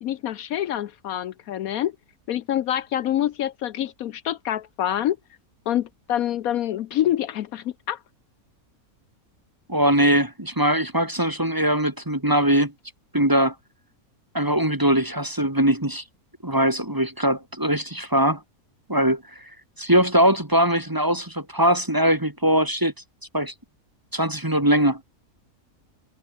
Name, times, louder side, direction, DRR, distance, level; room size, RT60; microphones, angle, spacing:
voice 1, 0.0-1.9 2.3-5.2 5.7-8.0, left 11 dB, 70° left, 1.1 m, -26 dB
voice 2, 9.7-12.7 13.1-13.5 14.3-16.0 16.4-18.4 18.9-19.4 19.8-22.9 23.3-23.5 24.1-25.0, right 1 dB, 15° right, 1.9 m, -21 dB
omnidirectional pair, 1.6 m